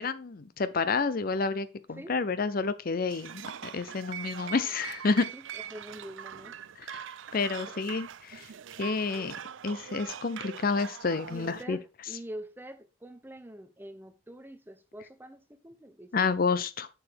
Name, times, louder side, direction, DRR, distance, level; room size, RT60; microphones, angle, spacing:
voice 1, 0.0-5.3 6.8-7.0 7.3-8.4 8.8-9.3 9.6-11.8 16.1-16.9, left 4 dB, 45° left, 0.5 m, -29 dB
sound 1, 3.1-11.6, right 9 dB, 70° right, 0.4 m, -42 dB
voice 2, 5.3-6.5 11.3-16.3, right 1 dB, 10° right, 0.6 m, -45 dB
7.0 x 6.8 x 3.4 m
head